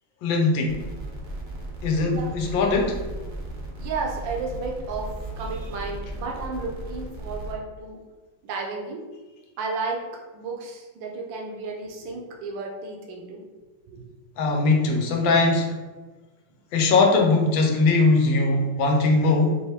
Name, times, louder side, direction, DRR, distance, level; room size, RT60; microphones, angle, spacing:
voice 1, 0.2-0.8 1.8-3.0 14.4-15.8 16.7-19.6, left 3 dB, 80° left, 2 dB, 1.4 m, -20 dB
sound 1, 0.6-7.5, right 1 dB, 45° right, 0.7 m, -36 dB
voice 2, 2.0-2.4 3.8-8.0 8.4-9.1 9.6-13.4 13.9-14.0, right 3 dB, 75° right, 1 dB, 1.4 m, -33 dB
4.5 x 3.0 x 3.2 m, 1.2 s
omnidirectional pair, 2.0 m